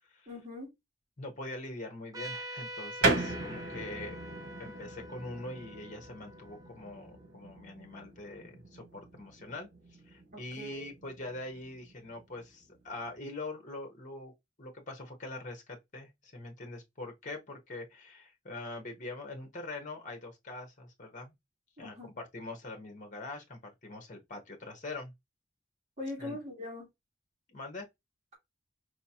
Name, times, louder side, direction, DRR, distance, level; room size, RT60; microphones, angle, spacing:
voice 1, 0.3-0.7 10.3-10.9 21.8-22.2 26.0-26.9, left 2 dB, 40° right, 3.1 m, -41 dB
voice 2, 1.2-4.2 4.6-9.7 10.1-14.3 14.6-21.3 21.8-25.1 26.2-26.4 27.5-27.9, left 2 dB, 45° left, 1.1 m, -43 dB
Trumpet, 2.1-7.2, equal, 20° right, 0.6 m, -45 dB
sound 1, 3.0-13.2, right 2 dB, 90° right, 1.2 m, -38 dB
4.9 x 3.1 x 2.8 m
head